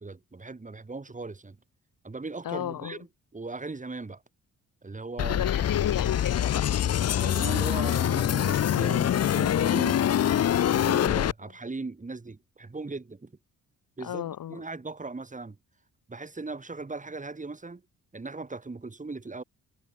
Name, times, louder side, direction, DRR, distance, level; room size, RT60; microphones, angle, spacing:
voice 1, 0.0-1.6 2.0-3.0 3.3-4.2 4.8-5.5 7.1-10.4 10.7-13.3 14.0-15.6 16.1-17.8 18.1-19.4, right 3 dB, 20° right, 4.1 m, -38 dB
voice 2, 2.4-3.0 5.3-6.7 11.4-11.5 14.0-14.6, left 11 dB, 70° left, 1.4 m, -33 dB
sound 1, 5.2-11.3, left 10 dB, 45° left, 0.6 m, -24 dB
cardioid pair, 125°, 34 cm